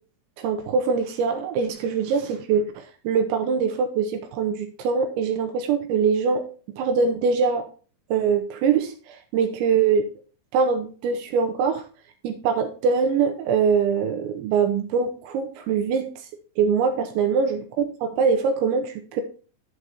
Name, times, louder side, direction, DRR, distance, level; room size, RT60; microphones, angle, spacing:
voice 1, 0.4-6.4 6.8-7.7 8.1-10.1 10.5-11.8 12.2-16.1 16.6-19.2, right 5 dB, 75° right, 5 dB, 3.0 m, -23 dB
12.0 x 4.8 x 4.1 m, 0.38 s
omnidirectional pair, 5.6 m